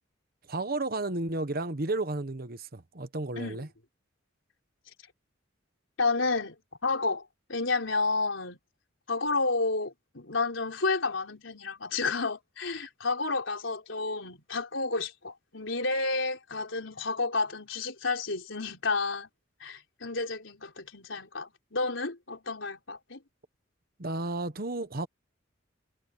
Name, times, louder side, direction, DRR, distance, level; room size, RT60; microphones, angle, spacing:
voice 1, 0.5-3.7 24.0-25.1, right 2 dB, 50° right, 1.2 m, -32 dB
voice 2, 6.0-6.5 6.8-8.6 9.1-19.3 19.6-23.2, left 3 dB, 85° left, 3.9 m, -31 dB
head